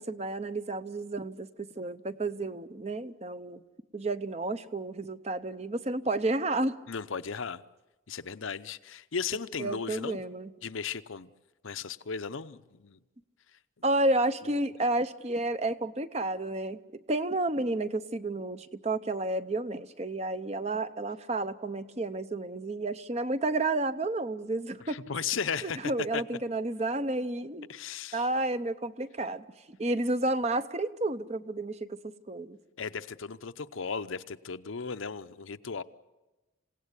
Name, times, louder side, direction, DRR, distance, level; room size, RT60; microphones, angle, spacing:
voice 1, 0.0-3.6 3.9-6.8 9.6-10.5 13.8-16.8 17.1-25.0 25.6-27.7 28.1-32.6, right 2 dB, 30° right, 12 dB, 0.8 m, -31 dB
voice 2, 6.9-7.6 8.1-10.2 10.6-11.3 11.6-13.0 24.9-26.2 27.7-28.3 32.8-35.8, left 6 dB, 80° left, 12 dB, 0.8 m, -36 dB
28.0 x 17.5 x 8.2 m, 1.1 s
head